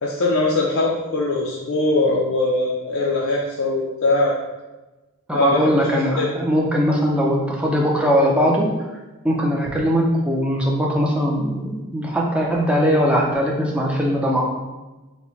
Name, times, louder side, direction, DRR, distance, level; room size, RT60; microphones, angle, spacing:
voice 1, 0.0-4.3 5.3-5.9 6.2-6.3, left 2 dB, 70° left, -3 dB, 0.5 m, -21 dB
voice 2, 5.3-8.7 9.2-14.5, equal, 5° right, -2 dB, 0.5 m, -20 dB
4.2 x 2.1 x 4.3 m, 1.1 s
head